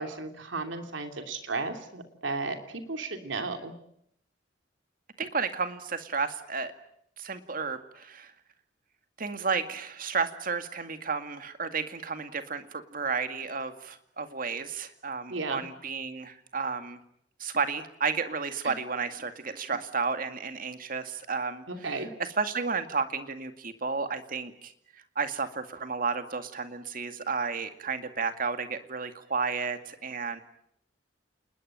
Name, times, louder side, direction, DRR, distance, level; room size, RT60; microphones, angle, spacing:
voice 1, 0.0-3.7 15.3-15.6 18.6-18.7 21.7-22.1, right 3 dB, 90° right, 6 dB, 2.9 m, -34 dB
voice 2, 5.2-6.7 7.2-8.3 9.2-17.0 17.4-21.6 22.4-24.7 25.2-30.4, right 5 dB, 50° right, 8 dB, 2.2 m, -32 dB
28.0 x 20.5 x 9.0 m, 0.74 s
head